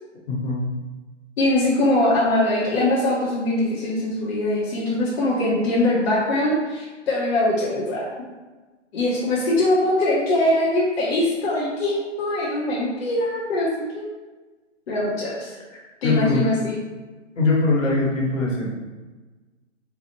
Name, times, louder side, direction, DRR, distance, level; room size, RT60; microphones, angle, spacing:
voice 1, 0.3-0.7 15.7-16.5 17.3-18.7, left 3 dB, 80° left, -4 dB, 1.5 m, -22 dB
voice 2, 1.4-8.1 8.9-14.1 14.9-15.5 16.0-16.7, left 1 dB, 55° left, -6 dB, 1.0 m, -22 dB
4.1 x 2.4 x 2.9 m, 1.3 s
hypercardioid pair, 135°, 37 cm